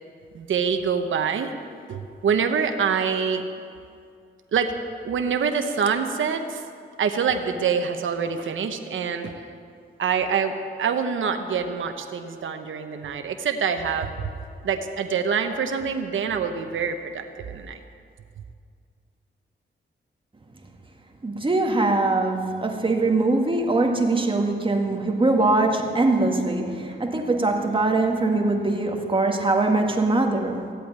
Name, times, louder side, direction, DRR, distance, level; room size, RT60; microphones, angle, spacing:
voice 1, 0.3-1.5 1.9-3.4 4.5-4.8 5.0-6.7 7.0-9.4 10.0-14.3 14.6-17.8, right 6 dB, 80° right, 6 dB, 1.0 m, -25 dB
voice 2, 21.2-30.7, right 2 dB, 25° right, 2 dB, 2.0 m, -22 dB
15.5 x 8.5 x 9.4 m, 2.3 s
cardioid pair, 80°, 20 cm